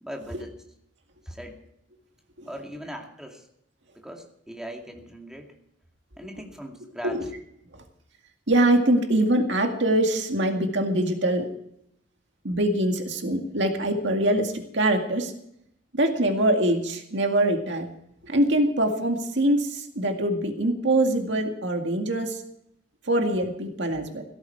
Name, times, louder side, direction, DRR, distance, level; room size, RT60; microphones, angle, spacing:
voice 1, 0.0-0.6 1.3-1.6 2.4-3.4 4.0-5.5 6.2-7.2, equal, 5° right, 1 dB, 2.4 m, -39 dB
voice 2, 8.5-11.5 12.4-15.3 15.9-17.9 18.2-22.4 23.1-24.2, right 1 dB, 65° right, 4 dB, 2.1 m, -23 dB
16.5 x 13.5 x 4.7 m, 0.75 s
head